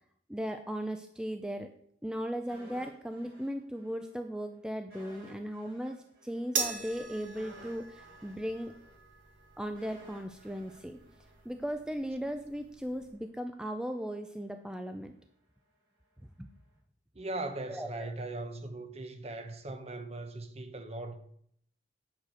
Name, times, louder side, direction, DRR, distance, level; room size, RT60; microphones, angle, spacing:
voice 1, 0.3-1.7 2.0-8.7 9.6-11.0 11.4-15.1 16.4-16.5 17.7-18.1, equal, 5° right, 0.4 m, -37 dB
sound 1, 2.5-4.1 4.4-4.5 4.9-12.0 12.3-12.4, equal, 60° right, 4.6 m, -55 dB
sound 2, 6.6-13.1, right 5 dB, 80° right, 1.7 m, -41 dB
voice 2, 17.1-21.1, right 2 dB, 35° right, 0.9 m, -39 dB
9.2 x 5.0 x 6.2 m
head